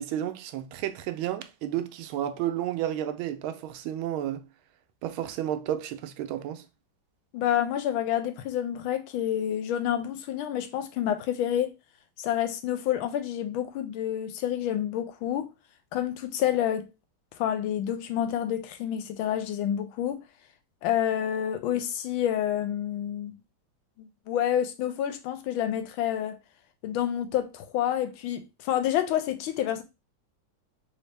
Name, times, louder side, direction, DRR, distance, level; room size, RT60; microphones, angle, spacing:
voice 1, 0.0-4.4 5.0-6.6, right 11 dB, 85° right, 1.4 m, -31 dB
voice 2, 7.3-11.7 12.2-15.5 15.9-16.9 17.4-20.2 20.8-23.3 24.0-26.4 26.8-29.8, left 10 dB, 85° left, 1.4 m, -28 dB
4.1 x 2.7 x 3.2 m
omnidirectional pair, 2.2 m